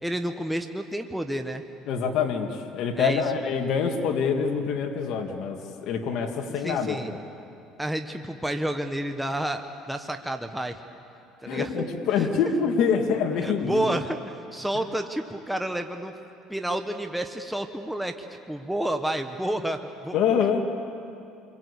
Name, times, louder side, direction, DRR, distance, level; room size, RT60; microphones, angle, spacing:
voice 1, 0.0-1.6 3.0-3.2 6.6-7.1 7.8-9.6 9.9-10.8 11.4-11.7 12.2-12.3 13.4-16.1 16.5-18.1 18.5-20.2, right 1 dB, 5° right, 5 dB, 1.3 m, -30 dB
voice 2, 1.9-7.2 11.5-13.8 20.1-20.6, left 6 dB, 65° left, 4 dB, 2.2 m, -25 dB
28.5 x 23.0 x 8.4 m, 2.6 s
cardioid pair, 110°, 0 cm